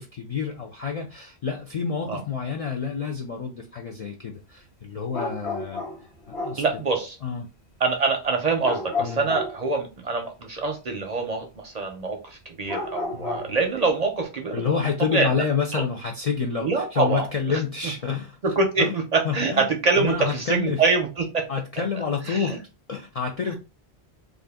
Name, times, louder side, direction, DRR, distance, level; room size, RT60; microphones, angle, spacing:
voice 1, 0.0-5.8 6.3-6.6 7.2-7.5 9.0-9.3 13.1-13.5 14.5-18.4 18.8-19.0 19.2-19.7 20.0-20.8 21.5-22.6 22.9-23.6, left 6 dB, 60° left, 0.4 m, -28 dB
sound 1, 5.1-6.7 8.6-9.7 12.6-13.6, left 3 dB, 80° left, 1.2 m, -31 dB
voice 2, 6.6-7.2 7.8-14.7 15.1-15.3 15.7-15.8 16.6-17.6 18.6-21.4 22.3-22.5, right 4 dB, 50° right, 0.5 m, -25 dB
2.5 x 2.4 x 3.4 m
omnidirectional pair, 1.1 m